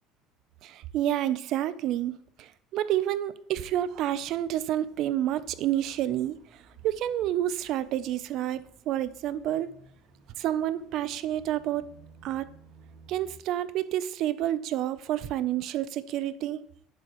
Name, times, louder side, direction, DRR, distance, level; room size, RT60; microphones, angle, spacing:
voice 1, 0.6-9.7 10.4-11.9 12.2-12.5 13.1-16.6, right 12 dB, 55° right, 0.5 m, -29 dB
sound 1, 3.7-13.4, right 4 dB, 80° right, 2.5 m, -57 dB
10.5 x 7.6 x 3.0 m
cardioid pair, 150°, 0 cm